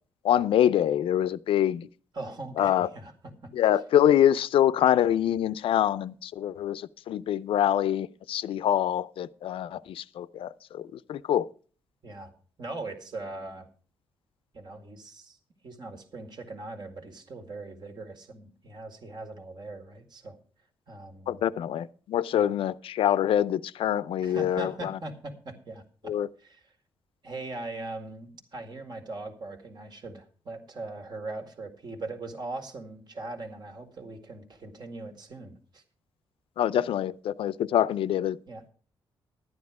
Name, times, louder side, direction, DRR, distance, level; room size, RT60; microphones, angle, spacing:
voice 1, 0.2-1.9 2.6-2.9 3.5-11.5 21.3-24.9 26.1-26.3 36.6-38.4, left 10 dB, 75° left, 0.5 m, -25 dB
voice 2, 2.1-3.5 12.0-13.7 14.5-15.4 15.6-20.4 20.9-21.4 22.3-22.6 24.2-26.1 26.4-26.7 27.2-35.8 38.5-38.7, right 2 dB, 50° right, 2.1 m, -40 dB
11.5 x 9.6 x 4.8 m
cardioid pair, 85°, 9 cm